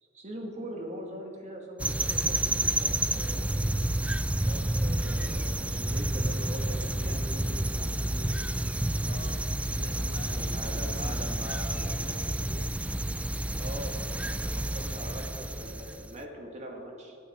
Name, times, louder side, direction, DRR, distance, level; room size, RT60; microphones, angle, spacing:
voice 1, 0.0-3.9 4.5-8.3 10.3-12.3 13.6-17.2, equal, 35° right, 1 dB, 2.2 m, -42 dB
sound 1, 1.8-16.1, right 1 dB, 5° right, 0.4 m, -30 dB
voice 2, 9.0-9.5 9.7-12.8, left 2 dB, 50° left, 7 dB, 0.9 m, -46 dB
24.0 x 8.5 x 4.7 m, 2.3 s
head